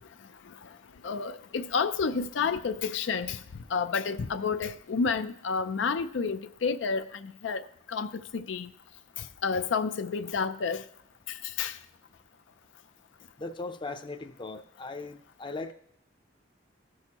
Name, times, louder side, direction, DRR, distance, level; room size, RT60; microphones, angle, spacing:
voice 1, 1.0-3.4 3.7-7.6 7.9-8.7 9.4-10.8 11.6-11.7, left 5 dB, 80° left, 0.5 m, -30 dB
voice 2, 13.4-15.7, left 3 dB, 25° left, 0.5 m, -38 dB
15.0 x 6.3 x 2.9 m
head